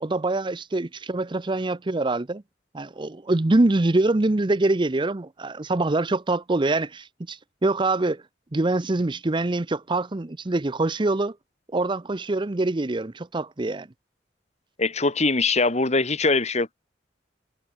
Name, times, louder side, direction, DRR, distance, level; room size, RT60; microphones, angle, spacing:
voice 1, 0.0-2.4 2.7-8.2 8.5-11.4 11.7-13.9, right 2 dB, 25° right, 0.6 m, -24 dB
voice 2, 14.8-16.7, left 3 dB, 35° left, 1.9 m, -22 dB
head